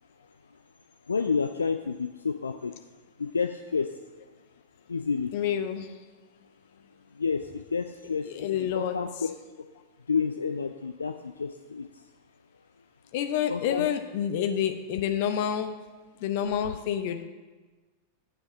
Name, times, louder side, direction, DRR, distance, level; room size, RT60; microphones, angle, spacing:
voice 1, 1.1-2.7 3.2-3.9 4.9-5.3 7.1-8.5 8.7-9.1 10.1-11.9 13.5-13.9, left 5 dB, 75° left, 8 dB, 0.4 m, -29 dB
voice 2, 5.3-5.9 8.2-9.0 13.1-15.7 16.2-17.2, left 9 dB, 50° left, 8 dB, 0.8 m, -28 dB
7.5 x 5.5 x 7.2 m, 1.3 s
figure-of-eight pair, 90°, 0 cm